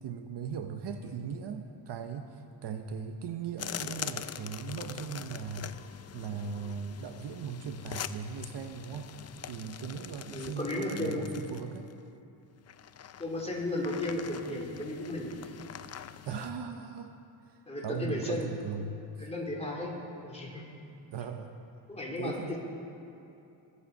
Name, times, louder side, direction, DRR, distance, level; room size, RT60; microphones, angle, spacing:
voice 1, 0.0-5.7 6.1-9.1 9.4-11.9 16.2-17.1 17.5-17.6 17.8-19.3 21.1-21.6 22.2-22.5, right 6 dB, 60° right, 6 dB, 0.9 m, -38 dB
sound 1, 3.6-11.9 12.7-16.5, left 9 dB, 35° left, 0.5 m, -43 dB
voice 2, 10.3-11.3 13.2-15.3 17.7-18.5 19.2-19.9 20.2-20.6 21.9-22.6, left 1 dB, 15° left, -3 dB, 3.4 m, -34 dB
25.0 x 8.7 x 5.4 m, 2.7 s
cardioid pair, 110°, 47 cm